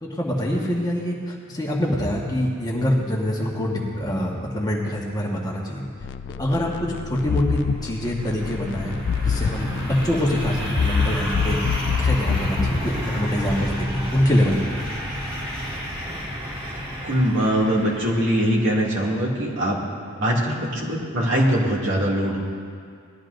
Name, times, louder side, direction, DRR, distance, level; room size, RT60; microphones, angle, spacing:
voice 1, 0.0-5.8 6.4-9.0 9.2-11.6 12.0-14.7, equal, 15° left, -3 dB, 1.4 m, -25 dB
sound 1, 6.0-12.8, left 6 dB, 50° left, 0.3 m, -27 dB
sound 2, 7.1-18.8, equal, 25° right, 2.0 m, -30 dB
voice 2, 17.0-19.8 20.2-22.4, equal, 55° right, -4 dB, 2.3 m, -22 dB
19.5 x 12.0 x 2.6 m, 2.2 s
head